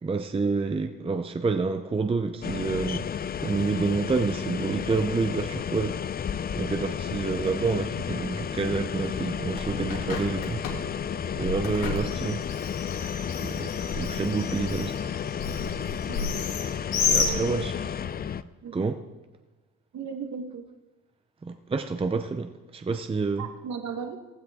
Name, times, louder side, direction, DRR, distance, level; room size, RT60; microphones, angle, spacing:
voice 1, 0.0-6.0 6.5-10.6 11.3-12.4 13.4-15.0 17.1-17.7 18.7-19.0 21.4-23.5, right 4 dB, 15° right, 0.6 m, -28 dB
sound 1, 2.4-18.4, left 8 dB, 30° left, 0.4 m, -32 dB
Bird, 9.1-18.0, left 5 dB, 85° left, 2.6 m, -32 dB
voice 2, 19.9-20.7 23.4-24.2, right 6 dB, 55° right, 1.4 m, -36 dB
15.5 x 15.0 x 3.6 m
cardioid pair, 100°, 33 cm